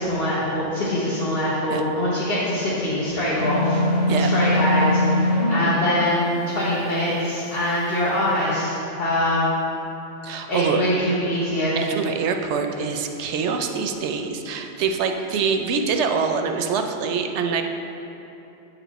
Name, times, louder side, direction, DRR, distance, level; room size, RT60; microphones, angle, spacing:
voice 1, 0.0-3.8 4.2-9.5 10.5-11.7, left 1 dB, 55° left, -9 dB, 1.3 m, -23 dB
sound 1, 3.4-5.6, left 1 dB, 35° left, 1.4 m, -21 dB
voice 2, 10.2-10.8 11.8-17.6, right 5 dB, 75° right, 5 dB, 0.8 m, -25 dB
8.3 x 4.5 x 4.0 m, 2.9 s
omnidirectional pair, 1.2 m